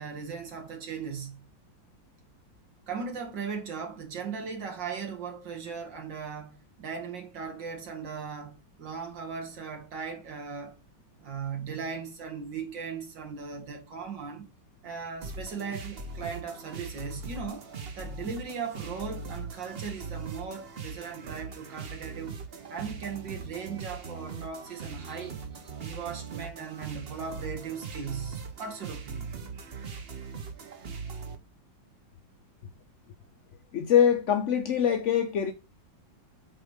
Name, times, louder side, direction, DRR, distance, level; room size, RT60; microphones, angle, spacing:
voice 1, 0.0-1.4 2.9-10.8 11.2-14.5 14.8-17.7 18.0-22.4 22.7-25.4 25.8-29.4, right 6 dB, 70° right, 2.6 m, -38 dB
sound 1, 15.2-31.3, right 4 dB, 40° right, 0.9 m, -40 dB
voice 2, 33.7-35.5, left 8 dB, 65° left, 0.7 m, -23 dB
8.7 x 3.6 x 4.9 m
omnidirectional pair, 2.1 m